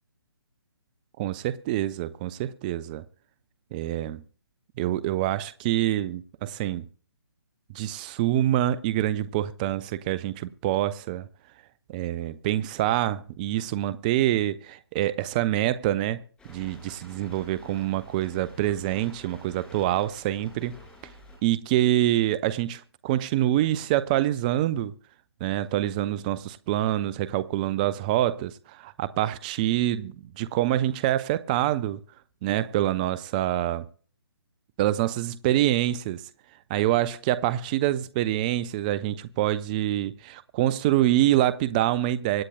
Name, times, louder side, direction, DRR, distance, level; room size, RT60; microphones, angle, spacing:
voice 1, 1.2-3.0 3.7-4.2 4.8-6.9 7.7-11.3 11.9-16.2 16.5-20.8 21.4-24.9 25.4-32.0 32.4-33.9 34.8-36.2 36.7-42.4, right 13 dB, 20° right, 0.4 m, -26 dB
sound 1, 16.4-21.4, left 1 dB, 5° left, 5.3 m, -50 dB
25.0 x 9.8 x 2.3 m
figure-of-eight pair, 145°, 13 cm